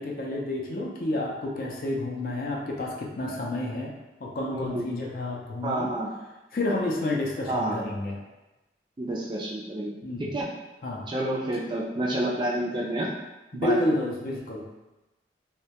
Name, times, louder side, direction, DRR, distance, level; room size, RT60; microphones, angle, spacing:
voice 1, 0.0-3.9 4.2-5.9 6.5-8.2 10.0-10.3 10.8-11.1 13.5-14.7, left 1 dB, 50° left, -2 dB, 0.4 m, -30 dB
voice 2, 4.5-4.8 5.6-6.1 7.5-7.8 9.0-9.9 10.2-10.5 11.1-13.1 13.5-13.8, right 1 dB, 25° right, -3 dB, 0.3 m, -29 dB
2.2 x 2.1 x 2.8 m, 1.0 s
head